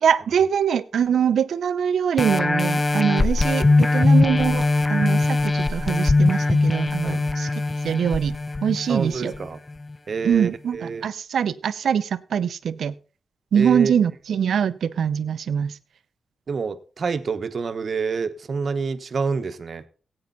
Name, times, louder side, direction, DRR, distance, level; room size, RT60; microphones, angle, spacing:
voice 1, 0.0-7.5 7.8-9.3 10.2-12.9 13.5-15.8, right 8 dB, 80° right, 14 dB, 0.7 m, -23 dB
sound 1, 2.2-9.4 9.9-10.0, left 2 dB, 30° left, 0.6 m, -21 dB
voice 2, 8.9-9.6 10.1-11.0 13.5-13.9 16.5-19.8, right 5 dB, 55° right, 10 dB, 1.1 m, -27 dB
16.5 x 8.8 x 4.0 m, 0.37 s
cardioid pair, 80°, 0 cm